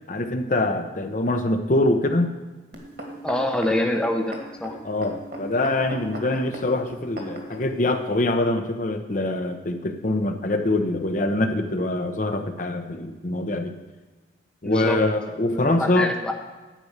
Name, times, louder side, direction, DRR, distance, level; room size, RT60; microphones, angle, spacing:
voice 1, 0.1-2.3 4.8-13.7 14.6-16.1, left 2 dB, 45° left, 6 dB, 0.8 m, -24 dB
sound 1, 2.7-7.6 8.3-8.4, right 1 dB, 55° right, 2.0 m, -37 dB
voice 2, 3.2-4.8 14.6-15.0 15.4-16.3, left 1 dB, 5° left, 3 dB, 0.7 m, -25 dB
10.0 x 5.3 x 8.0 m, 1.3 s
head